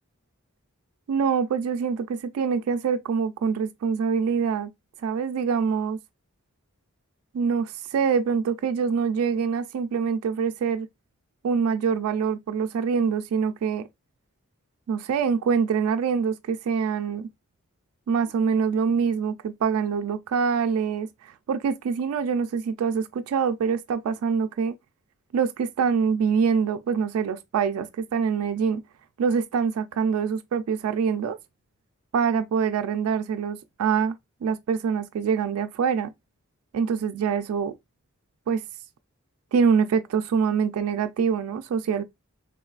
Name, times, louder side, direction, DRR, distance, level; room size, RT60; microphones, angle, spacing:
voice 1, 1.1-4.7 5.0-6.0 7.3-10.9 11.4-13.8 14.9-17.3 18.1-24.8 25.3-28.8 29.2-31.4 32.1-34.2 34.4-36.1 36.7-37.7 38.5-38.6 39.5-42.0, right 6 dB, 85° right, 0.3 m, -25 dB
3.6 x 2.4 x 2.2 m
head